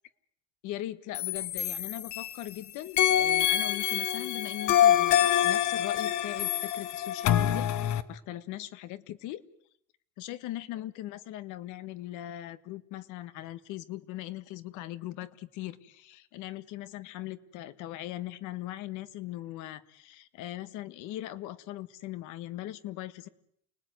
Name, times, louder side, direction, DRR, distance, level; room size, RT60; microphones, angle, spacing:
voice 1, 0.6-9.4 10.2-23.3, left 14 dB, 85° left, 12 dB, 1.6 m, -40 dB
sound 1, 1.1-2.5 3.0-8.0, left 11 dB, 70° left, 1.6 m, -26 dB
29.5 x 19.5 x 9.4 m, 0.73 s
cardioid pair, 115°, 29 cm